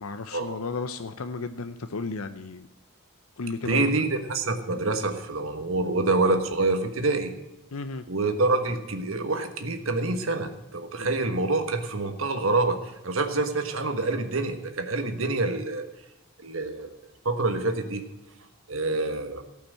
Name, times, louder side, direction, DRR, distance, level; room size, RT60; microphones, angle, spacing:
voice 1, 0.0-2.7 3.4-3.8 7.7-8.0 11.0-11.1, left 4 dB, 80° left, 10 dB, 0.7 m, -34 dB
voice 2, 3.6-7.3 8.1-12.8 13.0-15.8 16.4-16.9 17.2-18.0 18.7-19.4, right 2 dB, 70° right, 7 dB, 1.4 m, -26 dB
17.0 x 5.9 x 7.5 m, 0.98 s
head